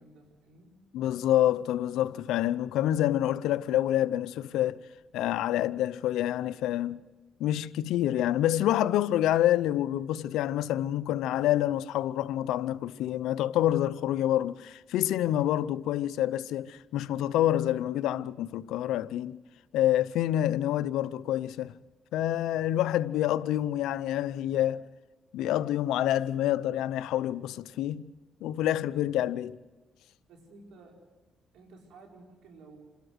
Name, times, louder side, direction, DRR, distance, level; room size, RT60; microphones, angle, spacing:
voice 1, 0.0-0.8 30.3-31.0 31.5-32.8, right 3 dB, 85° right, 4.5 m, -53 dB
voice 2, 0.9-4.8 5.1-7.0 7.4-19.4 19.7-21.7 22.1-24.8 25.3-28.1 28.4-29.6, left 12 dB, 90° left, 0.6 m, -27 dB
27.5 x 13.0 x 8.0 m
cardioid pair, 90°, 0 cm